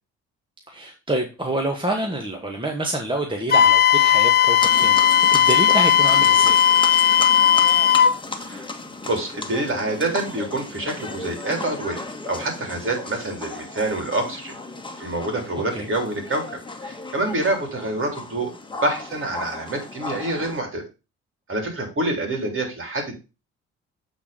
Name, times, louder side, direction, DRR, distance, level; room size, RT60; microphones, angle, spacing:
voice 1, 0.7-6.6 15.7-15.9, right 1 dB, 15° right, 2 dB, 1.8 m, -27 dB
Wind instrument woodwind instrument, 3.5-8.2, left 9 dB, 30° left, 0.6 m, -16 dB
sound 1, 4.6-20.6, left 3 dB, 15° left, 1.6 m, -35 dB
voice 2, 9.0-14.6 15.0-18.5 18.8-20.8 21.5-23.1, right 2 dB, 40° right, 3 dB, 3.8 m, -27 dB
8.2 x 4.4 x 5.2 m, 0.29 s
supercardioid pair, 60°, 30 cm